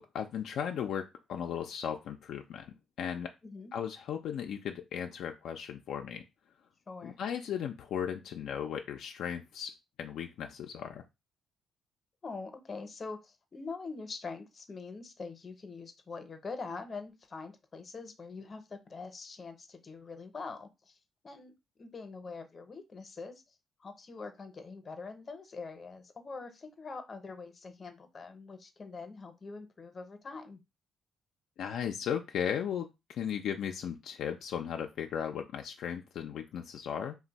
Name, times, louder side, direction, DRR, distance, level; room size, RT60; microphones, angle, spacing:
voice 1, 0.0-3.3 3.7-6.2 7.0-9.7 10.0-11.0 31.6-37.2, left 8 dB, 75° left, 4 dB, 0.3 m, -36 dB
voice 2, 12.2-21.0 21.2-23.4 23.8-30.6, left 4 dB, 35° left, 8 dB, 0.6 m, -44 dB
2.5 x 2.1 x 4.0 m, 0.23 s
cardioid pair, 90°, 0 cm